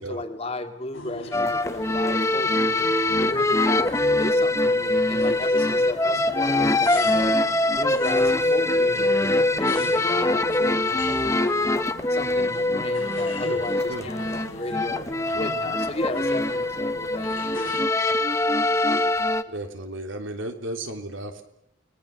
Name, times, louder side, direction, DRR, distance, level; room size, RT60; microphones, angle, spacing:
voice 1, 0.0-2.8 3.2-7.4 7.8-11.8 12.1-15.1 15.3-17.7, left 2 dB, 30° left, 6 dB, 2.2 m, -34 dB
sound 1, 0.9-17.9, left 2 dB, 85° left, 7.2 m, -40 dB
sound 2, 1.3-19.4, left 2 dB, 15° left, 1.1 m, -23 dB
voice 2, 13.4-14.1 19.5-21.4, right 1 dB, 75° right, 5 dB, 3.3 m, -34 dB
29.5 x 20.5 x 6.9 m, 0.80 s
head